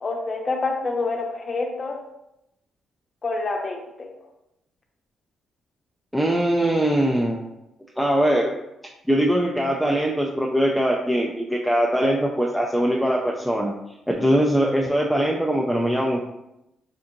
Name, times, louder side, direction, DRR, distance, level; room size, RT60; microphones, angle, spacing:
voice 1, 0.0-2.0 3.2-4.1, left 3 dB, 35° left, 1 dB, 0.7 m, -27 dB
voice 2, 6.1-7.5 8.0-8.5 9.1-13.7 14.2-16.2, equal, ahead, -2 dB, 0.4 m, -21 dB
4.5 x 2.4 x 2.7 m, 0.87 s
cardioid pair, 90°, 0 cm